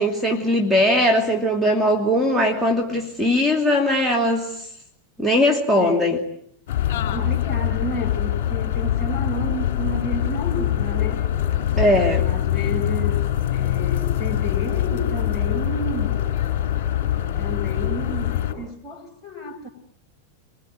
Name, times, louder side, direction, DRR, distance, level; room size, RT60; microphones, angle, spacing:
voice 1, 0.0-4.7 5.2-6.2 11.8-12.2, left 1 dB, 5° right, 2.6 m, -20 dB
voice 2, 5.7-6.2 7.1-11.3 12.0-16.2 17.4-19.7, equal, 25° left, 4.9 m, -31 dB
sound 1, 6.7-18.5, left 11 dB, 50° left, 4.8 m, -23 dB
26.0 x 21.5 x 9.3 m
figure-of-eight pair, 90°, 0 cm